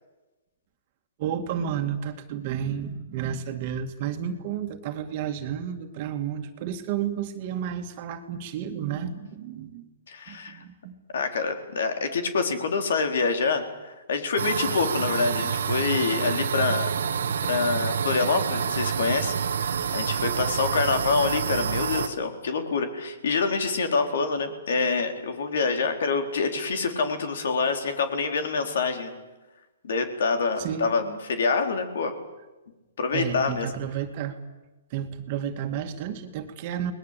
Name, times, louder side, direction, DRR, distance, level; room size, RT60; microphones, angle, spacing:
voice 1, 1.2-9.9 10.3-11.0 30.6-30.9 33.1-34.4 34.9-36.9, right 9 dB, 35° right, 6 dB, 2.2 m, -31 dB
voice 2, 10.1-10.6 11.1-16.9 17.4-29.1 29.8-32.1 33.0-33.7, left 4 dB, 70° left, 6 dB, 4.1 m, -26 dB
sound 1, 14.4-22.1, right 7 dB, 75° right, 1.6 m, -28 dB
29.0 x 20.5 x 8.4 m, 1.1 s
hypercardioid pair, 160°, 0 cm